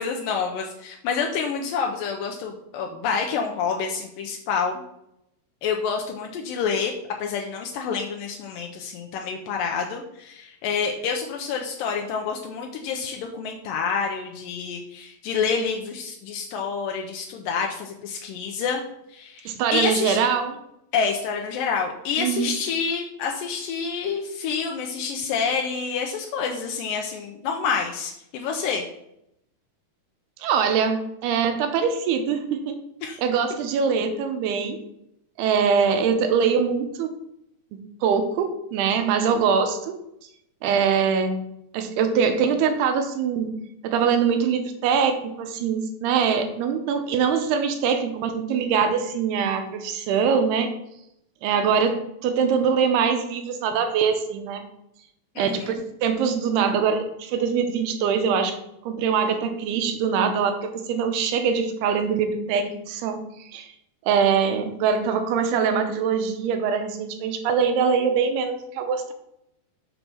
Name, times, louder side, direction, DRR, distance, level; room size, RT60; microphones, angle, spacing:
voice 1, 0.0-4.8 5.6-6.9 7.2-18.8 19.1-20.2 20.9-28.8 33.0-33.2 55.4-55.7, left 6 dB, 85° left, 1 dB, 2.0 m, -28 dB
voice 2, 19.5-20.6 22.2-22.5 30.4-32.8 33.2-34.8 35.4-37.1 37.7-40.0 40.6-41.4 41.7-43.6 43.8-50.7 51.4-54.6 55.4-55.7 56.0-58.5 58.9-63.2 63.5-63.7 64.1-69.1, right 6 dB, 85° right, 7 dB, 2.7 m, -23 dB
6.9 x 5.5 x 4.4 m, 0.80 s
omnidirectional pair, 4.6 m